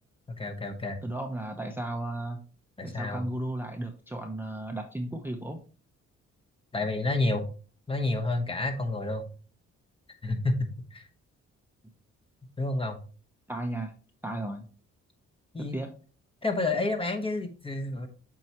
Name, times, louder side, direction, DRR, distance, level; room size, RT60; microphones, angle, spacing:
voice 1, 0.3-1.0 2.8-3.2 6.7-7.5 7.9-9.2 10.2-11.0 12.6-13.0 15.5-15.8 16.4-18.1, left 2 dB, 20° left, 5 dB, 1.0 m, -29 dB
voice 2, 1.0-2.4 2.8-5.6 13.5-14.0 14.2-14.7 15.6-15.9, right 1 dB, 5° right, 4 dB, 0.7 m, -34 dB
7.6 x 4.6 x 2.9 m, 0.38 s
cardioid pair, 95°, 29 cm